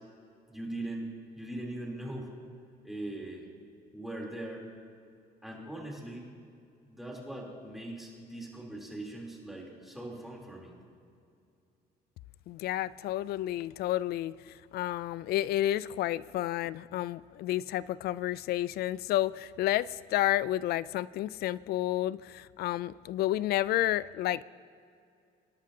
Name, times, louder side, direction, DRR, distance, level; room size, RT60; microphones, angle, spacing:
voice 1, 0.5-2.3 2.8-3.4 3.9-4.7 5.4-6.3 6.8-10.7, right 1 dB, ahead, -3 dB, 3.4 m, -40 dB
voice 2, 12.5-24.4, left 14 dB, 70° left, 19 dB, 0.4 m, -31 dB
25.5 x 11.5 x 2.8 m, 2.4 s
cardioid pair, 110°, 17 cm